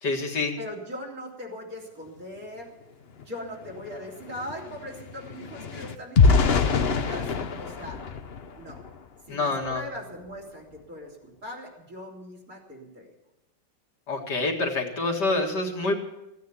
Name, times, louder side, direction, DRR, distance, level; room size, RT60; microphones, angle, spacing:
voice 1, 0.0-0.5 9.3-9.8 14.1-15.9, left 3 dB, 70° left, 1 dB, 2.5 m, -26 dB
voice 2, 0.6-2.7 3.1-8.0 8.6-8.8 9.3-13.1, left 1 dB, 50° right, 0 dB, 3.9 m, -40 dB
sound 1, 3.2-3.3 3.6-9.1 9.6-9.8 10.1-10.4, left 5 dB, 45° left, 0.9 m, -25 dB
16.5 x 9.4 x 8.4 m, 0.89 s
omnidirectional pair, 1.9 m